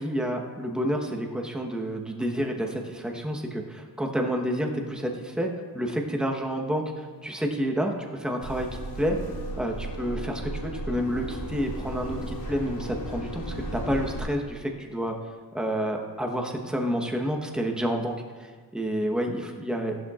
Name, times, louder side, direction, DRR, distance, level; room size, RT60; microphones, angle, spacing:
voice 1, 0.0-8.7 9.0-9.2 9.6-15.2 15.5-20.0, equal, ahead, 2 dB, 1.1 m, -29 dB
sound 1, 8.4-14.2, right 1 dB, 85° left, 2.9 m, -35 dB
14.5 x 11.5 x 2.5 m, 1.5 s
cardioid pair, 105°, 36 cm